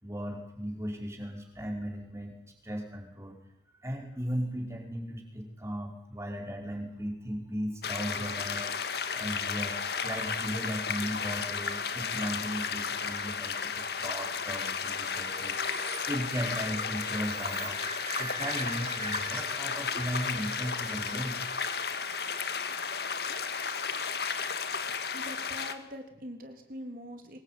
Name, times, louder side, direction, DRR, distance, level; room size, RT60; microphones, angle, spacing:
voice 1, 0.0-2.4 2.6-3.4 3.8-8.7 9.1-17.8 18.2-21.4, equal, 15° right, 2 dB, 5.2 m, -37 dB
sound 1, 7.8-25.7, left 6 dB, 65° left, 2.0 m, -33 dB
sound 2, 15.1-23.7, right 4 dB, 30° right, 3.6 m, -44 dB
voice 2, 25.1-27.4, equal, 50° right, 5 dB, 3.5 m, -43 dB
24.0 x 21.0 x 9.4 m, 0.79 s
head